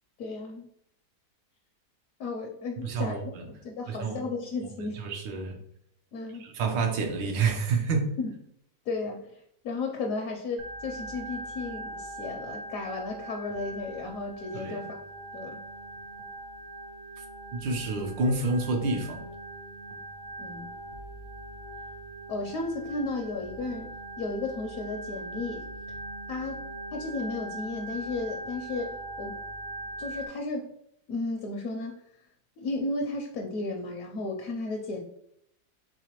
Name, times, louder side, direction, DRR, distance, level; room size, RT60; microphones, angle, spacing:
voice 1, 0.2-0.7 2.2-3.2 3.5-5.0 6.1-6.4 8.2-8.3 8.9-9.3 9.6-15.0 15.3-15.6 20.4-20.7 22.3-23.9 24.2-25.7 26.3-26.6 26.9-29.4 30.0-30.7 31.1-31.9 32.6-35.0, left 3 dB, 65° left, 2 dB, 0.9 m, -34 dB
voice 2, 2.8-3.4 3.9-4.2 4.8-5.6 6.4-8.1 14.5-14.8 17.5-19.2, right 4 dB, 80° right, 2 dB, 1.5 m, -28 dB
Organ, 10.6-30.3, right 2 dB, 65° right, 0.8 m, -41 dB
4.7 x 3.5 x 2.9 m, 0.74 s
omnidirectional pair, 2.0 m